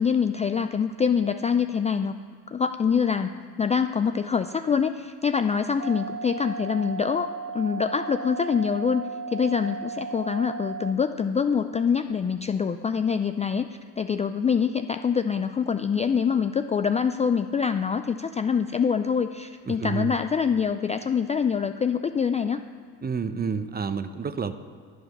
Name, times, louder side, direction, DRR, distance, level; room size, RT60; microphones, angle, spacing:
voice 1, 0.0-2.1 2.5-9.0 9.3-22.6, left 6 dB, 20° left, 9 dB, 0.4 m, -25 dB
sound 1, 5.8-10.9, right 5 dB, 45° right, 1.8 m, -35 dB
voice 2, 19.7-20.2 23.0-24.5, right 6 dB, 25° right, 11 dB, 0.8 m, -29 dB
11.0 x 9.6 x 6.0 m, 2.1 s
supercardioid pair, 80°, 40 cm